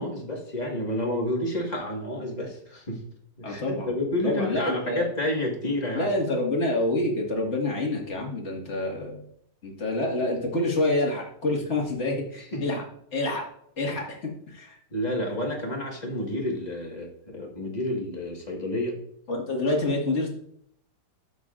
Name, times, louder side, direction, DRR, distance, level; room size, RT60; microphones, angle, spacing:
voice 1, 0.0-3.0 3.4-6.1 12.3-12.6 14.9-19.0, left 1 dB, 25° left, 0 dB, 1.7 m, -30 dB
voice 2, 3.4-3.9 4.2-5.1 5.9-9.3 9.6-12.8 13.1-13.4 13.8-14.8 19.3-20.3, left 2 dB, 40° left, 0 dB, 2.0 m, -27 dB
13.0 x 6.2 x 2.5 m, 0.69 s
omnidirectional pair, 1.9 m